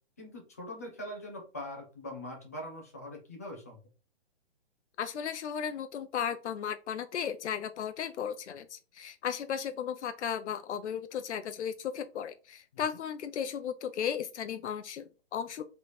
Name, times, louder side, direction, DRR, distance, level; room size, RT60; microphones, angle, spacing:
voice 1, 0.2-3.8 12.7-12.8, left 1 dB, 15° left, 1 dB, 0.5 m, -42 dB
voice 2, 5.0-15.6, left 8 dB, 85° left, 10 dB, 0.5 m, -35 dB
3.3 x 3.1 x 4.1 m, 0.34 s
hypercardioid pair, 170°, 34 cm